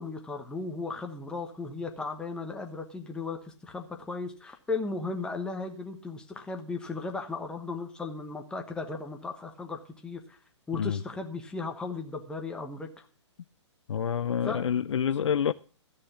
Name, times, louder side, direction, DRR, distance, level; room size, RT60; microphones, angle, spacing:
voice 1, 0.0-10.4 10.7-13.1 14.4-14.6, left 3 dB, 5° left, 1.2 m, -36 dB
voice 2, 13.9-15.5, left 8 dB, 80° left, 0.5 m, -27 dB
13.0 x 6.6 x 7.1 m
hypercardioid pair, 140°, 15 cm